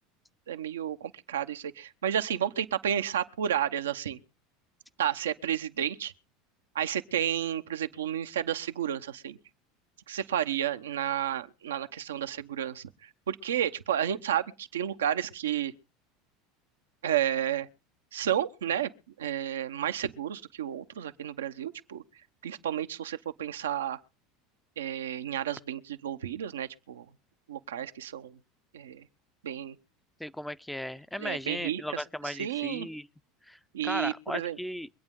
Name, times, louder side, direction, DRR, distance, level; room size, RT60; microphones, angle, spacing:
voice 1, 0.5-4.2 5.0-6.1 6.7-9.4 10.1-15.7 17.0-17.7 18.1-18.9 19.2-22.0 22.4-24.0 24.8-27.0 27.5-28.4 28.7-29.1 29.4-29.8 31.2-32.9 33.7-34.6, right 10 dB, 85° right, 0.8 m, -31 dB
voice 2, 30.2-33.1 33.5-34.9, left 1 dB, 5° left, 0.6 m, -36 dB
24.0 x 8.8 x 3.7 m
hypercardioid pair, 85°, 0 cm